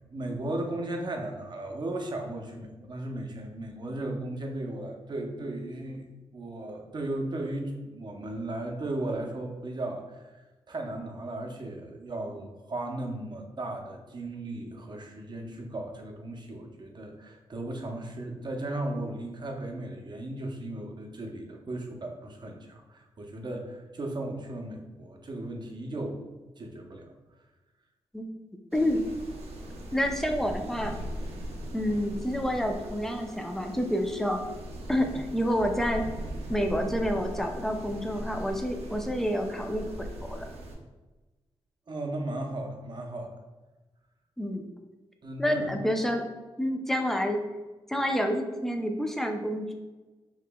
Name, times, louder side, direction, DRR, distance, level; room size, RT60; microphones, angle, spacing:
voice 1, 0.1-6.0 6.3-10.4 10.7-26.2 26.6-27.1 41.9-43.3 45.2-45.8, right 1 dB, 45° right, 2 dB, 0.7 m, -36 dB
voice 2, 28.7-29.0 29.9-30.9 31.7-34.4 34.9-36.0 36.5-40.5 44.4-44.7 45.4-46.2 46.6-47.4 47.9-49.7, equal, 5° left, 4 dB, 0.5 m, -28 dB
sound 1, 28.7-40.7, right 1 dB, 75° right, 0.7 m, -39 dB
4.7 x 3.0 x 2.3 m, 1.2 s
cardioid pair, 60°, 11 cm